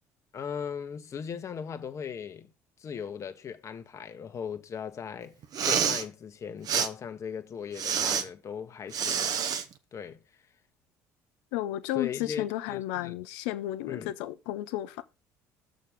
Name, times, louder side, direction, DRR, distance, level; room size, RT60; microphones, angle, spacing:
voice 1, 0.3-2.5 2.8-5.4 5.7-9.3 9.9-10.2 11.9-13.2 13.9-14.1, left 7 dB, 45° left, 1.4 m, -38 dB
Respiratory sounds, 5.4-6.0 6.7-6.9 7.8-8.2 8.9-9.6, right 7 dB, 55° right, 1.2 m, -27 dB
voice 2, 11.5-15.0, left 14 dB, 85° left, 0.9 m, -33 dB
6.8 x 5.2 x 6.3 m
supercardioid pair, 75°, 7 cm